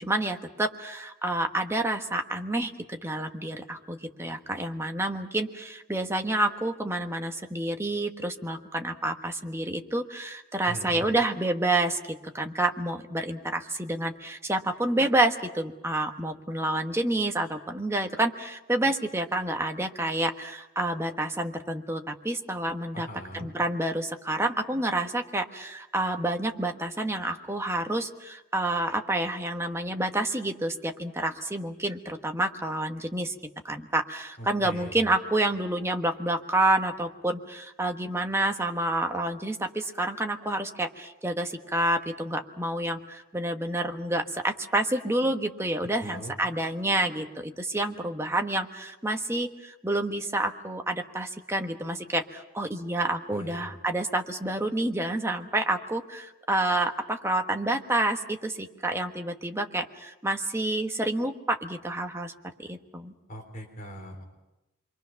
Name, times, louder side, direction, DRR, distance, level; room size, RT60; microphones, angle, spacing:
voice 1, 0.0-23.1 23.3-33.3 33.6-62.3 62.6-63.1, right 1 dB, 10° right, 4 dB, 1.3 m, -29 dB
voice 2, 10.7-11.1 22.9-23.5 34.4-35.0 46.0-46.3 53.3-53.7 63.3-64.2, equal, 40° left, 3 dB, 3.7 m, -40 dB
27.5 x 23.0 x 5.9 m, 1.0 s
head